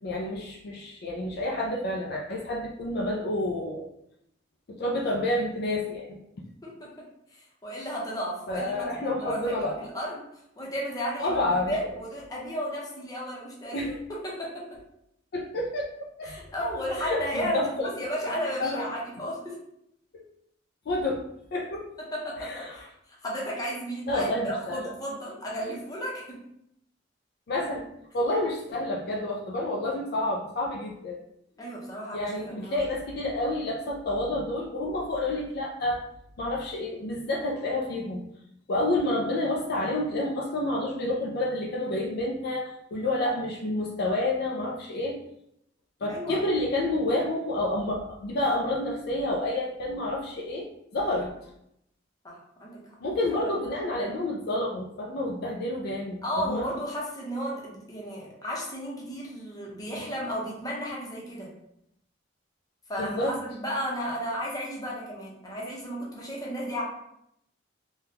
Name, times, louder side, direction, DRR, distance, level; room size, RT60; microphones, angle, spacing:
voice 1, 0.0-3.9 4.7-6.2 8.5-9.8 11.2-11.8 13.7-14.0 15.3-15.9 16.2-16.3 17.0-17.9 18.6-18.9 20.1-20.2 20.9-21.2 21.5-21.9 22.4-22.8 24.1-24.8 27.5-27.9 28.1-31.2 32.1-36.0 36.4-38.2 38.7-45.2 46.0-51.5 53.0-56.7 63.0-63.4, left 1 dB, 60° left, -1 dB, 0.4 m, -29 dB
voice 2, 7.3-10.2 10.6-13.8 14.2-14.8 16.2-19.6 22.1-22.9 23.2-26.4 31.6-32.8 46.1-46.4 52.2-52.8 53.1-53.5 56.2-61.5 62.9-66.8, equal, 20° left, -4 dB, 0.8 m, -34 dB
3.5 x 2.3 x 2.8 m, 0.77 s
head